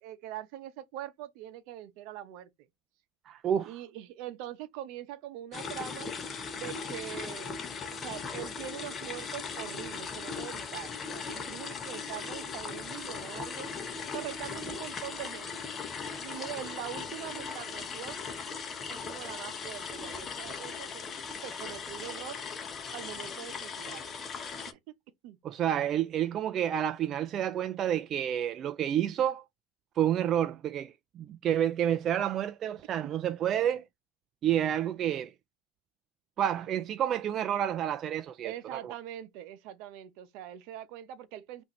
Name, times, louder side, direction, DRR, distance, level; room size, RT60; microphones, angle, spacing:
voice 1, 0.0-2.5 3.6-6.1 6.6-7.7 8.0-13.7 14.1-15.5 16.2-18.2 18.9-21.1 21.4-22.4 22.9-24.1 24.7-24.8 25.2-25.4 33.0-33.1 38.4-41.6, right 12 dB, 60° right, 0.8 m, -43 dB
voice 2, 3.3-3.8 25.4-29.4 30.0-33.8 34.4-35.3 36.4-38.9, right 10 dB, 35° right, 0.3 m, -29 dB
sound 1, 5.5-24.7, left 5 dB, 25° left, 0.8 m, -38 dB
5.6 x 2.7 x 3.1 m
supercardioid pair, 130°, 0 cm